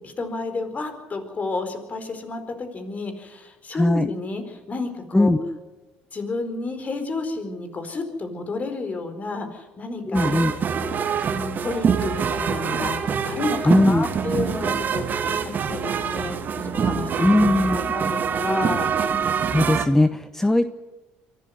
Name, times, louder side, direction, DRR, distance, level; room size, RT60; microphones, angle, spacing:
voice 1, 0.0-5.3 6.1-10.3 10.9-17.2 17.7-18.9, left 3 dB, 35° left, 7 dB, 4.5 m, -31 dB
voice 2, 3.7-4.1 5.1-5.6 10.1-10.6 13.7-14.1 17.2-17.8 19.5-20.7, left 1 dB, 10° left, 11 dB, 0.9 m, -19 dB
sound 1, 10.1-19.9, right 7 dB, 45° right, 1.9 m, -25 dB
23.5 x 12.5 x 9.6 m, 1.1 s
hypercardioid pair, 70°, 4 cm